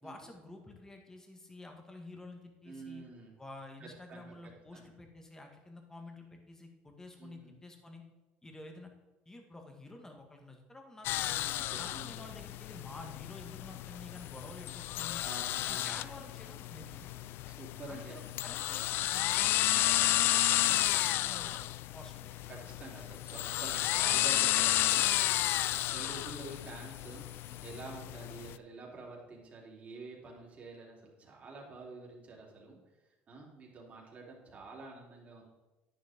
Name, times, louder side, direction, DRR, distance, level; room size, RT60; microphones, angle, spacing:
voice 1, 0.0-3.0 3.4-8.0 8.4-8.9 9.3-11.4 11.8-15.2 15.7-17.2 17.9-20.3 20.6-21.6 21.9-22.5, left 2 dB, 15° left, 3 dB, 1.8 m, -50 dB
voice 2, 2.6-3.3 3.8-4.3 4.7-4.9 7.2-7.6 11.4-12.1 15.2-16.0 17.5-18.3 20.6-20.9 22.5-25.1 25.9-32.8 33.3-35.4, right 3 dB, 35° right, -2 dB, 3.4 m, -48 dB
sound 1, 11.0-28.6, left 15 dB, 60° left, 0.3 m, -32 dB
10.5 x 10.5 x 3.7 m, 1.1 s
supercardioid pair, 110°, 4 cm